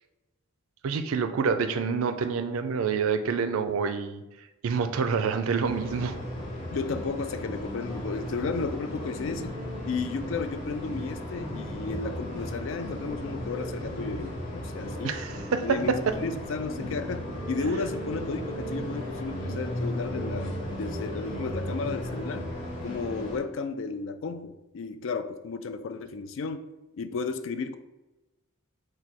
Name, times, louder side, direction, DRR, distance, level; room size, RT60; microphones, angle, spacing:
voice 1, 0.8-4.2 4.6-6.2 15.0-16.1, right 5 dB, 80° right, 9 dB, 0.4 m, -27 dB
sound 1, 5.6-23.4, equal, 35° left, 0.8 m, -35 dB
voice 2, 6.7-9.6 9.9-15.2 15.6-22.5 22.8-26.7 26.9-27.8, left 4 dB, 65° left, 10 dB, 0.3 m, -33 dB
4.7 x 2.2 x 4.1 m, 1.0 s
head